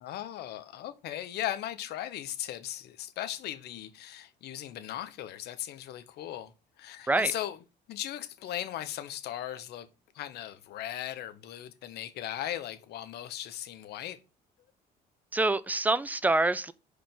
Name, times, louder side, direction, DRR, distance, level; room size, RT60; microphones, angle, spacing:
voice 1, 0.0-6.5 6.8-7.6 7.9-9.9 10.1-14.2, left 12 dB, 75° left, 1.0 m, -37 dB
voice 2, 15.3-16.7, right 2 dB, 10° right, 0.5 m, -26 dB
5.2 x 5.0 x 6.0 m
cardioid pair, 110°, 17 cm